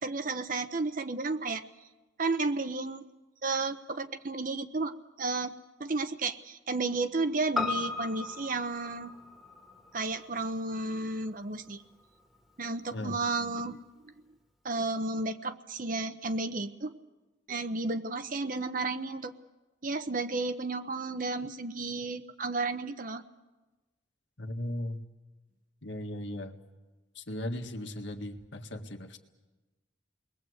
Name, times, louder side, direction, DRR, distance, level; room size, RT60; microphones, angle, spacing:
voice 1, 0.0-1.6 2.2-3.0 3.4-4.9 5.2-9.1 9.9-11.8 12.6-13.8 14.6-16.9 17.5-19.3 19.8-23.2, right 3 dB, 40° right, 10 dB, 0.9 m, -32 dB
Piano, 7.6-12.1 12.4-12.5, left 4 dB, ahead, 1.7 m, -37 dB
voice 2, 24.4-25.0 25.8-26.5 27.2-29.2, left 1 dB, 65° left, 4 dB, 1.7 m, -37 dB
29.5 x 21.0 x 8.0 m, 1.2 s
head